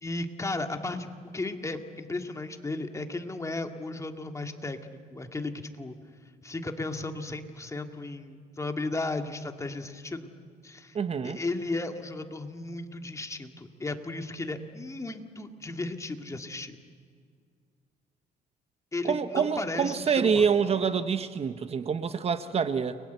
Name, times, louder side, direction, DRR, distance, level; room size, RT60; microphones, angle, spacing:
voice 1, 0.0-6.0 6.4-10.3 10.6-11.0 11.2-16.8 18.9-20.5, left 2 dB, 15° left, 6 dB, 2.0 m, -35 dB
voice 2, 10.9-11.4 19.0-23.0, right 6 dB, 35° right, 11 dB, 1.1 m, -26 dB
30.0 x 22.5 x 8.1 m, 2.1 s
cardioid pair, 110°, 17 cm